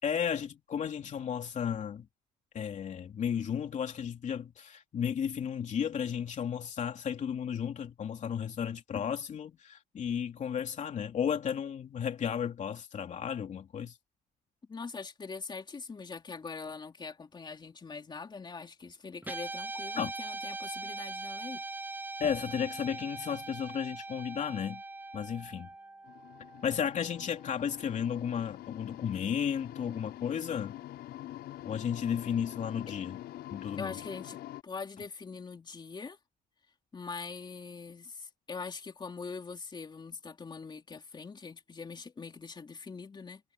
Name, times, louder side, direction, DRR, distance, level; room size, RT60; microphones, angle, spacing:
voice 1, 0.0-2.1 2.5-14.0 20.0-20.1 22.2-24.8 25.1-25.7 26.6-30.7 31.6-33.2 33.5-33.9, left 8 dB, 45° left, 3.0 m, -33 dB
voice 2, 14.7-21.6 33.8-36.2 36.9-43.4, left 4 dB, 25° left, 3.5 m, -43 dB
Guitar, 19.2-27.7, right 3 dB, 10° right, 1.1 m, -41 dB
sound 1, 26.0-34.6, left 14 dB, 75° left, 6.1 m, -45 dB
cardioid pair, 110°, 17 cm